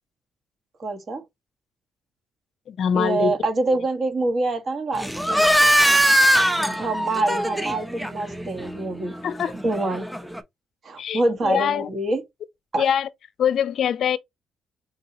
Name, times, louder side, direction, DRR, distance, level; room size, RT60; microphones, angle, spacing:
voice 1, 0.8-1.2 2.9-5.5 6.6-9.1 9.6-10.1 10.8-12.2 12.7-12.9, right 2 dB, 50° right, 1.2 m, -25 dB
voice 2, 2.7-3.3 9.2-9.5 11.0-11.9 12.8-13.1 13.4-14.2, left 8 dB, 65° left, 0.4 m, -23 dB
sound 1, 4.9-10.4, equal, 5° right, 0.6 m, -22 dB
4.5 x 2.8 x 2.7 m
cardioid pair, 90°, 0 cm